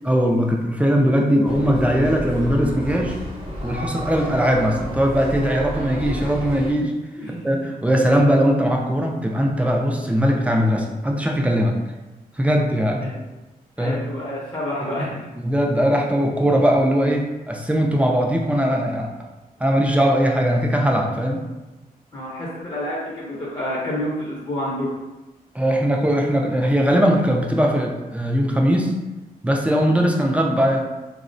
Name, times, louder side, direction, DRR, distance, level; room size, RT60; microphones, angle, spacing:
voice 1, 0.0-3.2 3.6-7.0 7.4-11.8 12.4-13.1 13.8-14.0 15.4-19.1 19.6-21.4 25.5-28.9 29.4-30.8, equal, 10° right, 0 dB, 0.3 m, -20 dB
sound 1, 1.4-6.7, equal, 35° right, 0.7 m, -31 dB
voice 2, 13.8-15.3 22.1-24.9, left 1 dB, 30° left, -7 dB, 0.6 m, -28 dB
3.5 x 2.0 x 2.5 m, 1.1 s
wide cardioid pair, 145°, 16 cm